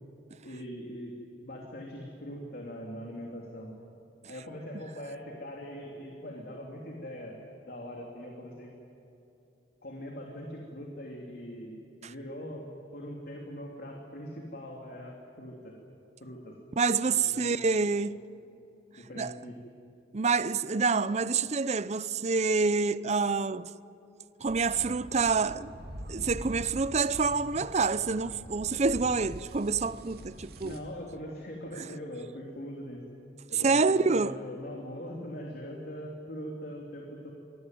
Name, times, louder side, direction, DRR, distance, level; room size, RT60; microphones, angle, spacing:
voice 1, 0.4-1.1 1.4-3.7 4.3-7.4 7.7-8.7 9.8-12.6 12.9-15.8 16.2-16.6 17.1-17.6 19.0-19.6 30.6-33.0 33.5-37.3, equal, 55° left, 3.1 m, -41 dB
voice 2, 16.8-18.2 19.2-19.3 20.1-23.7 24.4-25.7 26.1-30.8 33.6-34.4, right 4 dB, 40° right, 0.6 m, -27 dB
sound 1, 24.5-30.8, equal, 55° right, 2.7 m, -44 dB
26.5 x 20.0 x 9.4 m
head